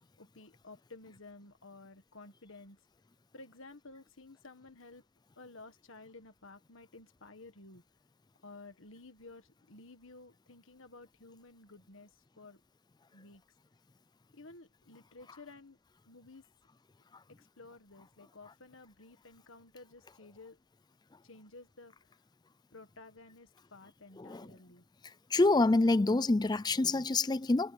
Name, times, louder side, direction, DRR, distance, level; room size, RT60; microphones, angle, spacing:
voice 1, 0.2-2.8 3.3-5.0 5.4-7.8 8.4-12.1 12.4-12.6 13.1-13.4 14.3-15.8 16.0-16.4 17.4-20.6 21.2-21.9 22.7-24.8, left 3 dB, 65° left, 1.7 m, -53 dB
voice 2, 24.2-24.5 25.3-27.7, left 2 dB, 20° left, 0.4 m, -27 dB
head